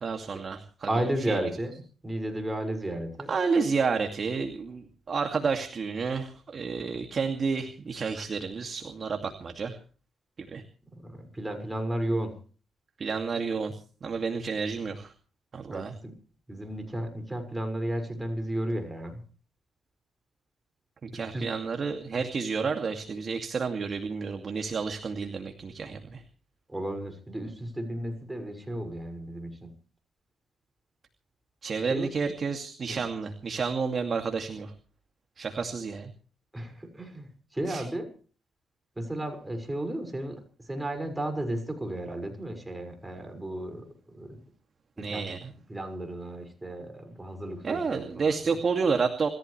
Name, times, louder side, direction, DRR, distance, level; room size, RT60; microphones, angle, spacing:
voice 1, 0.0-0.9 1.3-1.4 3.3-9.8 10.4-10.6 13.0-15.1 15.5-15.9 21.0-26.2 31.6-34.7 35.4-36.1 37.7-37.8 45.0-45.5 47.6-49.3, right 5 dB, 45° right, 5 dB, 2.5 m, -30 dB
voice 2, 0.9-1.7 2.0-3.3 10.9-12.4 15.7-16.1 16.5-19.2 21.1-21.5 26.7-29.8 31.9-32.2 32.9-33.0 36.5-38.1 38.9-44.4 45.0-45.4 45.7-48.6, right 1 dB, 15° right, 6 dB, 6.2 m, -33 dB
27.5 x 15.0 x 3.4 m, 0.40 s
cardioid pair, 90°, 0 cm